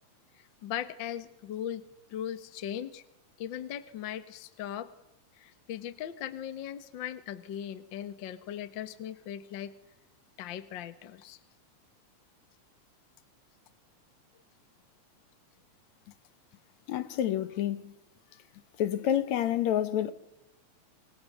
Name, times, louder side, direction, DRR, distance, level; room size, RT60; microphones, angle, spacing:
voice 1, 0.4-1.8 2.1-3.0 3.4-4.9 5.4-9.7 10.4-11.4, left 10 dB, 50° left, 1.6 m, -38 dB
voice 2, 16.9-17.9 18.8-20.1, left 11 dB, 70° left, 2.4 m, -28 dB
29.5 x 26.5 x 6.8 m
omnidirectional pair, 3.4 m